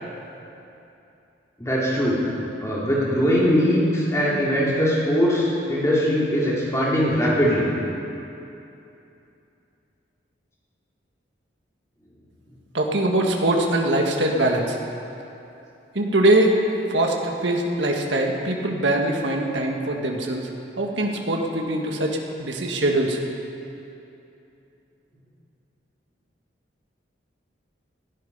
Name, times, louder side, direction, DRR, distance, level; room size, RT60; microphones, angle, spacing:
voice 1, 1.6-2.3 2.6-7.7, equal, 15° left, -6 dB, 3.2 m, -21 dB
voice 2, 12.7-14.8 15.9-16.6 16.9-20.5 20.8-23.2, right 1 dB, 80° right, 1 dB, 1.8 m, -22 dB
18.5 x 12.0 x 5.6 m, 2.8 s
head